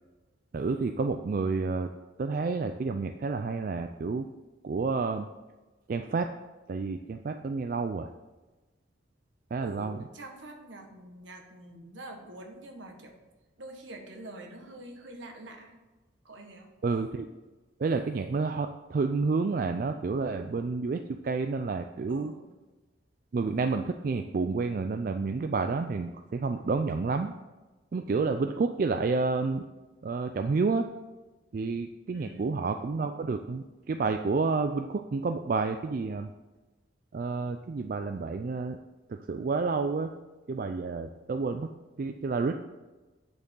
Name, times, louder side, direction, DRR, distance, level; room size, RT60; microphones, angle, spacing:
voice 1, 0.5-1.9 2.2-4.3 4.6-5.3 5.9-6.3 6.7-8.1 9.5-10.0 16.8-17.3 17.8-22.3 23.3-27.3 27.9-29.6 30.0-30.9 31.5-36.3 37.1-38.8 39.1-40.1 40.5-41.7 42.0-42.6, right 4 dB, 45° right, 6 dB, 0.3 m, -29 dB
voice 2, 9.6-13.2 13.6-15.7 16.2-16.7 22.1-22.5 32.1-32.7, right 1 dB, 75° right, 3 dB, 1.4 m, -46 dB
8.6 x 6.6 x 3.8 m, 1.2 s
head